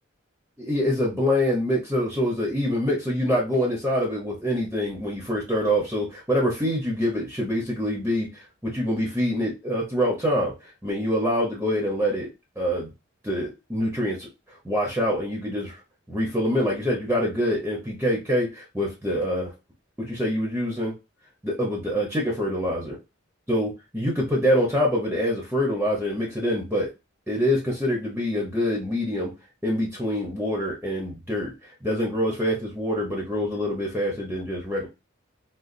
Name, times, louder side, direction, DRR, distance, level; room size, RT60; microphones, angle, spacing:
voice 1, 0.6-12.3 12.6-12.9 13.2-15.8 16.1-19.5 20.0-20.9 21.4-23.0 23.5-26.9 27.3-29.3 29.6-34.9, equal, 10° right, -1 dB, 0.8 m, -25 dB
3.8 x 2.4 x 2.5 m, 0.26 s
head